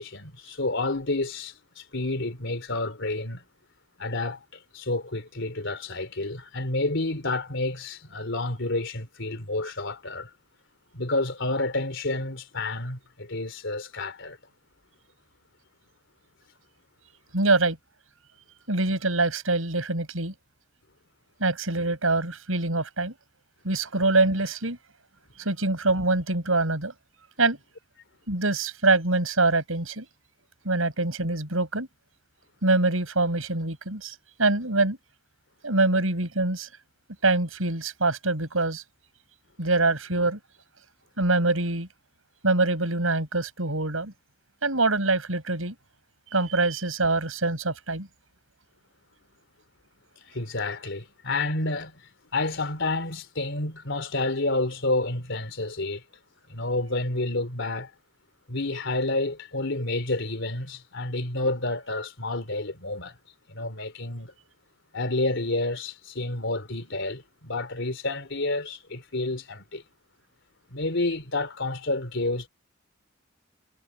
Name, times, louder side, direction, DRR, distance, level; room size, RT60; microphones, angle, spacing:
voice 1, 0.0-3.4 4.0-4.4 4.7-10.3 10.9-14.4 50.3-52.0 52.3-56.0 56.5-57.9 58.5-63.2 63.5-64.3 64.9-69.8 70.7-72.5, left 2 dB, 65° left, 3.8 m, -29 dB
voice 2, 17.3-17.8 18.7-20.3 21.4-23.1 23.6-24.8 25.4-26.9 27.4-27.6 28.3-30.1 30.6-31.9 32.6-35.0 35.6-36.7 37.2-38.8 39.6-40.4 41.2-41.9 42.4-44.1 44.6-45.7 46.3-48.1, right 2 dB, 90° right, 6.3 m, -24 dB
head